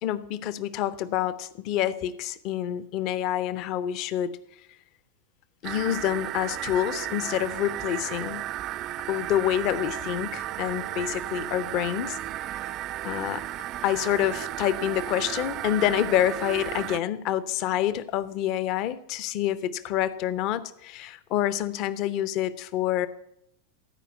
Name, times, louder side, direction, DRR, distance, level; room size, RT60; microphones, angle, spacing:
voice 1, 0.0-4.4 5.6-8.4 9.1-12.2 13.0-13.4 13.8-23.1, left 12 dB, 40° left, 16 dB, 0.6 m, -27 dB
sound 1, 5.6-17.0, right 14 dB, 35° right, 0.3 m, -34 dB
13.0 x 4.9 x 8.0 m, 0.79 s
figure-of-eight pair, 90°, 0 cm